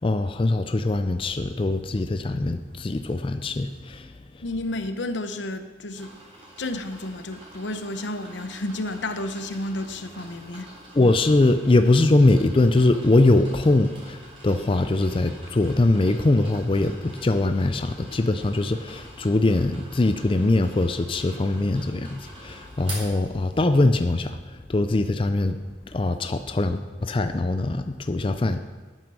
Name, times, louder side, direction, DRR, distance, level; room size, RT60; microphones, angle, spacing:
voice 1, 0.0-4.1 10.9-25.6 25.9-28.6, left 2 dB, 30° left, 0.4 m, -22 dB
voice 2, 4.4-6.1 6.6-10.7, left 1 dB, 85° left, 0.8 m, -31 dB
sound 1, 5.9-23.9, right 1 dB, 30° right, 3.7 m, -45 dB
9.1 x 8.8 x 6.2 m
head